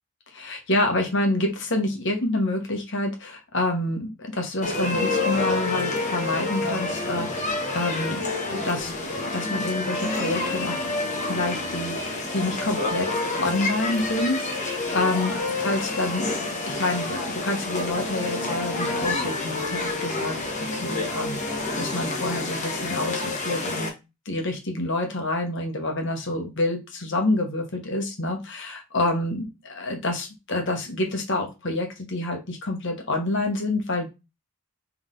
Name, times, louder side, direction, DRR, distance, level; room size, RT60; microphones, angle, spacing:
voice 1, 0.4-10.9 11.2-13.1 13.3-23.9 24.2-34.1, left 2 dB, 55° left, 3 dB, 1.2 m, -28 dB
sound 1, 4.6-23.9, left 3 dB, 35° left, 1.0 m, -28 dB
3.9 x 3.5 x 3.8 m, 0.26 s
head